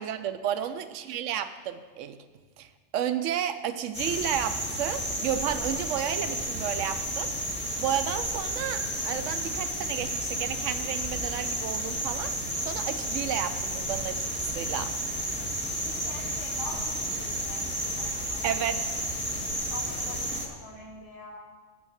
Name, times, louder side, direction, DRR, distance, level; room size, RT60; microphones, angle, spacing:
voice 1, 0.0-2.2 2.6-2.7 2.9-7.3 7.8-12.4 12.6-14.9 18.4-18.9, right 10 dB, 80° right, 10 dB, 0.9 m, -32 dB
sound 1, 3.9-20.5, right 1 dB, 30° left, 1.5 m, -32 dB
voice 2, 15.3-18.4 19.5-21.4, left 2 dB, 75° left, -5 dB, 1.7 m, -45 dB
9.8 x 6.3 x 7.2 m, 1.4 s
omnidirectional pair, 1.3 m